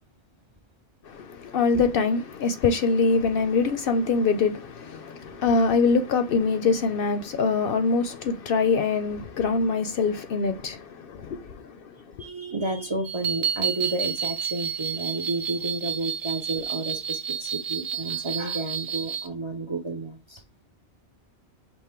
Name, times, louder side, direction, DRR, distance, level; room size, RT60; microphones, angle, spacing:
voice 1, 1.1-11.8 12.2-12.3, left 4 dB, 65° left, 0.7 m, -24 dB
voice 2, 12.2-20.4, right 2 dB, 35° right, 0.5 m, -31 dB
sound 1, 13.1-19.3, right 7 dB, 90° right, 1.1 m, -30 dB
5.4 x 2.1 x 4.3 m
omnidirectional pair, 1.1 m